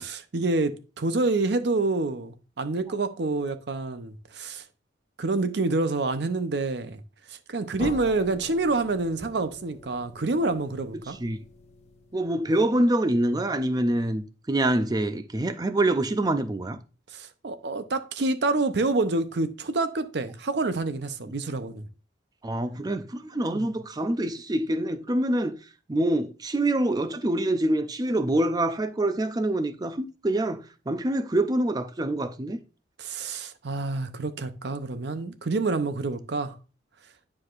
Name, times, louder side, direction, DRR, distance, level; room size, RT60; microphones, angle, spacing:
voice 1, 0.0-4.6 5.2-7.0 7.3-11.2 17.1-21.9 23.5-23.8 33.0-36.6, right 3 dB, 60° right, 0.6 m, -27 dB
sound 1, 7.8-12.6, left 2 dB, 35° left, 0.7 m, -44 dB
voice 2, 11.1-11.4 12.1-16.8 22.4-25.6 25.9-32.6, right 1 dB, 20° right, 0.4 m, -26 dB
9.5 x 4.8 x 2.4 m
head